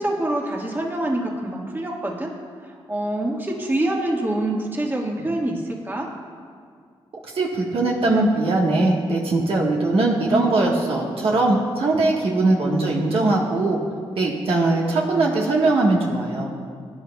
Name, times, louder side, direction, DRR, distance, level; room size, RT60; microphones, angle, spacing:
voice 1, 0.0-2.3 2.6-6.1, right 1 dB, 20° right, -1 dB, 1.6 m, -25 dB
voice 2, 7.3-13.8 14.2-16.5, right 2 dB, 70° right, -2 dB, 1.4 m, -20 dB
16.5 x 10.0 x 2.3 m, 2.1 s
cardioid pair, 70°, 10 cm